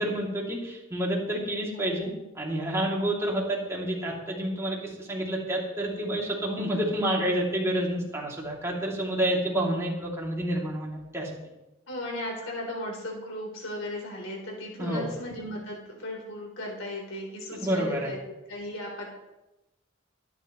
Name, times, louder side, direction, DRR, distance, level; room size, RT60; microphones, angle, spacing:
voice 1, 0.0-2.1 2.3-11.3 14.8-15.1 17.5-18.1, right 1 dB, 15° right, -3 dB, 2.8 m, -29 dB
voice 2, 1.7-2.1 11.9-18.2 18.5-19.1, left 1 dB, 85° left, -1 dB, 4.0 m, -36 dB
23.0 x 10.0 x 3.2 m, 0.98 s
head